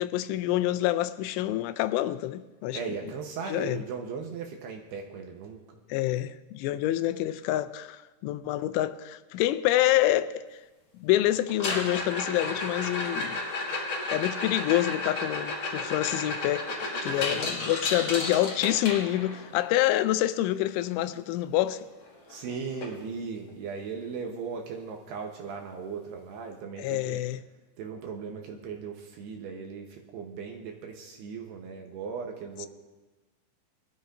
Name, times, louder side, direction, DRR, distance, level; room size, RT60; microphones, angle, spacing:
voice 1, 0.0-3.0 3.5-3.8 5.9-10.5 11.0-13.4 14.1-16.7 17.0-21.9 26.8-27.4 32.6-32.7, left 14 dB, 85° left, 3.0 m, -27 dB
voice 2, 2.7-5.8 17.1-17.5 22.3-27.2 27.8-32.7, right 5 dB, 75° right, 2.7 m, -38 dB
sound 1, 11.5-19.5 21.7-21.8 22.1-22.4 22.8-22.9 23.5-23.6 25.5-25.6, left 2 dB, 50° left, 2.2 m, -32 dB
21.5 x 13.5 x 2.6 m
omnidirectional pair, 5.5 m